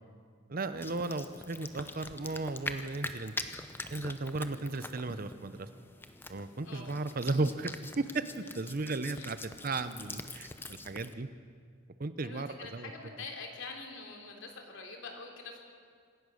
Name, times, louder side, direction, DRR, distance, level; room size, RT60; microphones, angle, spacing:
voice 1, 0.5-3.3 3.9-5.7 6.3-7.7 8.0-8.2 8.6-11.3 12.0-12.9, right 3 dB, 45° right, 12 dB, 0.7 m, -35 dB
sound 1, 0.8-11.1, left 2 dB, 10° left, 0.7 m, -44 dB
voice 2, 6.6-7.3 8.4-8.5 9.1-9.2 12.2-15.6, left 3 dB, 65° left, 2 dB, 3.3 m, -45 dB
26.5 x 16.0 x 6.5 m, 2.1 s
head